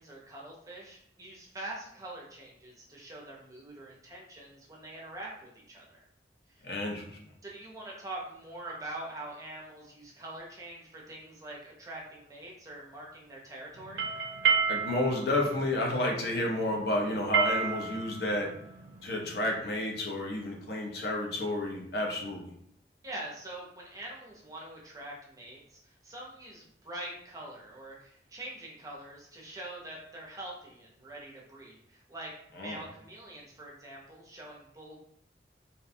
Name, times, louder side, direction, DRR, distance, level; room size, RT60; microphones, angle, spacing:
voice 1, 0.0-6.0 6.5-6.6 7.4-14.0 23.0-35.1, right 1 dB, 20° right, -3 dB, 0.5 m, -44 dB
voice 2, 6.6-7.2 14.7-18.5 19.0-22.5 32.6-32.8, left 1 dB, 70° left, -1 dB, 0.6 m, -31 dB
sound 1, 13.8-19.5, right 6 dB, 85° right, 0.4 m, -31 dB
2.6 x 2.1 x 2.6 m, 0.70 s
head